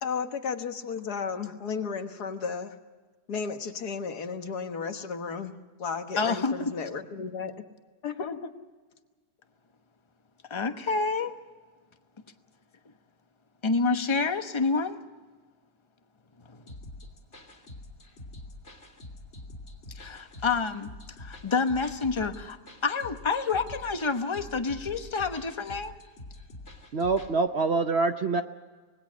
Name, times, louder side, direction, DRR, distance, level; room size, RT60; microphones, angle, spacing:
voice 1, 0.0-2.8 3.3-7.5 8.0-8.5, left 5 dB, 75° left, 7 dB, 1.9 m, -34 dB
voice 2, 6.2-6.7 10.5-11.3 13.6-15.0 16.4-16.6 19.9-20.9 21.2-22.6 22.8-25.9, left 4 dB, 20° left, 8 dB, 0.9 m, -28 dB
sound 1, 16.7-27.3, left 2 dB, 45° left, 2.6 m, -46 dB
voice 3, 26.9-28.4, right 3 dB, 50° right, 8 dB, 0.8 m, -25 dB
25.5 x 20.0 x 6.3 m, 1.4 s
omnidirectional pair, 1.7 m